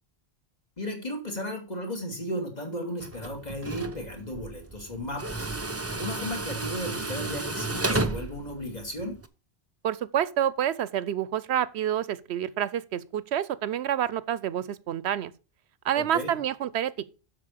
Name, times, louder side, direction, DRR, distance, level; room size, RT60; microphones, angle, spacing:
voice 1, 0.8-5.5 5.9-9.2 16.0-16.4, equal, 40° left, 2.9 m, -35 dB
Tools, 3.0-9.3, right 2 dB, 15° right, 0.6 m, -33 dB
voice 2, 9.8-15.3 15.8-17.0, right 10 dB, 80° right, 0.9 m, -28 dB
7.5 x 6.6 x 6.6 m
omnidirectional pair, 1.1 m